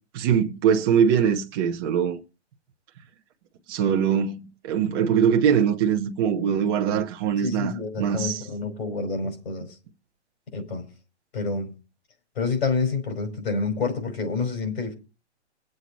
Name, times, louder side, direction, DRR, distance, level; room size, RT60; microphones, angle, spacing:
voice 1, 0.1-2.2 3.7-7.7 8.0-8.4, right 8 dB, 20° right, 1.0 m, -22 dB
voice 2, 7.4-9.8 10.5-10.9 11.3-11.7 12.4-14.9, left 4 dB, 60° left, 5.2 m, -28 dB
22.5 x 7.9 x 4.1 m
hypercardioid pair, 165°, 34 cm